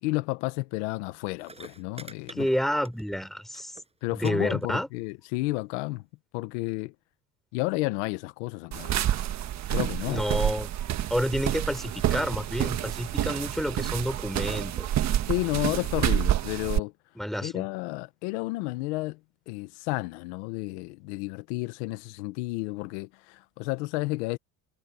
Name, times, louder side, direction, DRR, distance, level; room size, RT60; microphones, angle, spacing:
voice 1, 0.0-2.5 4.0-6.0 6.3-6.9 7.5-9.0 9.7-10.2 12.6-12.7 15.3-16.9 17.4-19.2 19.5-24.4, left 22 dB, 90° left, 1.2 m, -31 dB
sound 1, 1.1-1.2 1.4-3.3 3.6-3.9 4.2-4.3 4.6-5.1 5.9-6.0, right 3 dB, 20° right, 6.5 m, -46 dB
voice 2, 2.3-3.8 4.1-4.9 10.0-10.7 11.1-14.9 17.2-17.6, equal, ahead, 5.2 m, -29 dB
sound 2, 8.7-16.8, right 11 dB, 55° right, 1.5 m, -28 dB
supercardioid pair, 90°, 34 cm